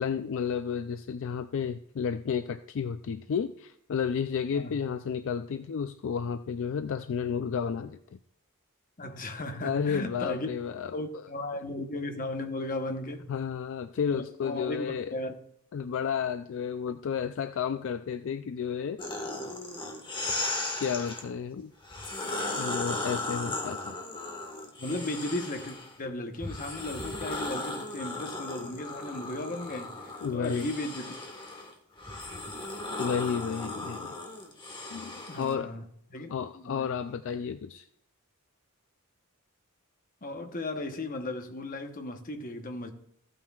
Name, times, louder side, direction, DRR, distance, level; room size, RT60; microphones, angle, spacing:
voice 1, 0.0-8.2 9.6-10.9 13.3-15.1 15.7-19.0 20.8-21.7 22.5-23.9 30.2-30.7 33.0-34.1 34.9-35.7 36.3-37.9, left 7 dB, 65° left, 0.4 m, -32 dB
voice 2, 9.0-10.5 10.9-13.3 14.1-15.3 24.8-31.1 35.3-35.8 36.1-36.3 36.5-37.1 40.2-42.9, left 1 dB, 40° left, 1.0 m, -36 dB
sound 1, 19.0-21.2 21.8-25.9 26.4-35.5, left 2 dB, 20° left, 1.4 m, -36 dB
15.0 x 8.8 x 2.4 m
head